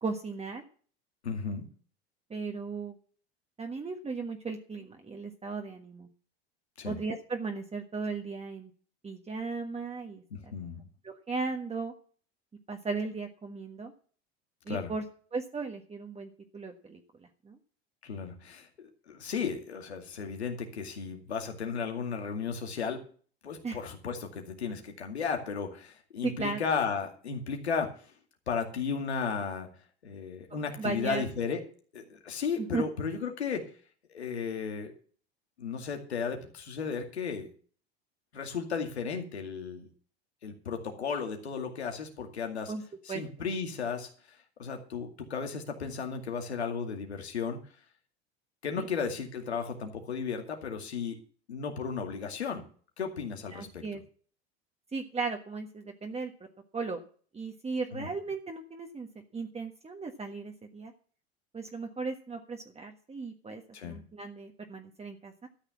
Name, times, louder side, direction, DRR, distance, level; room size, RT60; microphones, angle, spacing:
voice 1, 0.0-0.6 2.3-3.0 3.6-6.1 6.8-8.7 9.0-10.2 11.0-11.9 12.7-13.9 14.6-15.0 15.3-17.6 23.6-23.8 26.2-26.6 30.8-31.2 32.6-32.8 42.7-42.8 43.1-43.2 48.8-48.9 53.5-54.0 54.9-56.3 56.7-57.0 57.3-59.1 59.3-60.9 61.5-65.5, right 4 dB, 20° right, 3 dB, 1.5 m, -36 dB
voice 2, 1.2-1.7 6.8-7.0 10.3-10.9 14.7-14.9 18.0-23.0 23.4-28.1 28.5-29.7 30.0-31.6 31.9-33.7 34.1-34.9 35.6-37.5 38.3-39.9 40.4-42.7 43.0-47.6 48.6-51.2 51.5-52.6 53.0-53.8 57.9-58.1 63.7-64.0, left 6 dB, 90° left, 4 dB, 2.3 m, -34 dB
13.0 x 6.5 x 7.2 m, 0.43 s
hypercardioid pair, 80°, 32 cm